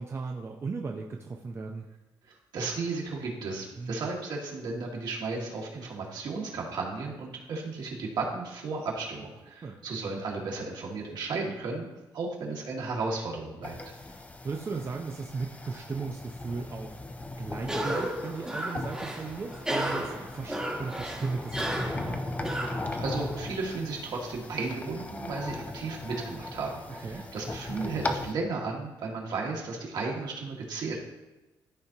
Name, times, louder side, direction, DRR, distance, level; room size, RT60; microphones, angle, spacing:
voice 1, 0.0-1.8 3.8-4.1 9.6-9.8 13.9-17.0 17.4-22.2 27.0-27.2, right 4 dB, 35° right, 2 dB, 0.6 m, -36 dB
voice 2, 2.5-11.9 12.1-13.7 22.9-31.0, right 3 dB, 65° right, -2 dB, 2.0 m, -34 dB
sound 1, 13.6-28.3, left 2 dB, 20° left, 0.6 m, -38 dB
Cough, 17.6-23.4, right 1 dB, 10° right, 1.2 m, -34 dB
13.0 x 4.4 x 2.9 m, 1.1 s
cardioid pair, 110°, 8 cm